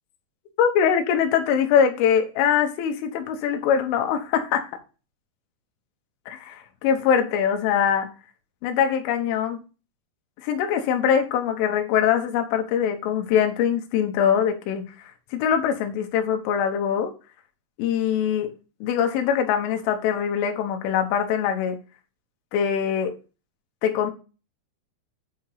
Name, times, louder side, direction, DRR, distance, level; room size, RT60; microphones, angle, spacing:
voice 1, 0.6-4.7 6.3-8.1 8.6-9.6 10.4-14.9 15.3-17.1 17.8-18.5 18.8-21.8 22.5-23.1 23.8-24.1, left 8 dB, 85° left, 3.4 m, -23 dB
8.6 x 2.9 x 5.5 m
omnidirectional pair, 5.6 m